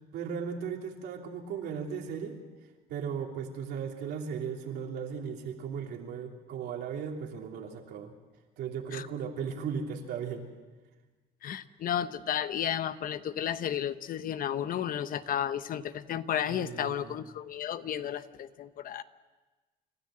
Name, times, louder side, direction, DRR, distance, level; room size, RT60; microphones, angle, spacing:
voice 1, 0.1-2.4 2.9-8.1 8.6-10.5 16.5-17.1, right 7 dB, 75° right, 1 dB, 3.2 m, -36 dB
voice 2, 11.4-19.0, left 10 dB, 55° left, 13 dB, 1.0 m, -33 dB
29.5 x 13.0 x 7.6 m, 1.2 s
cardioid pair, 110°, 17 cm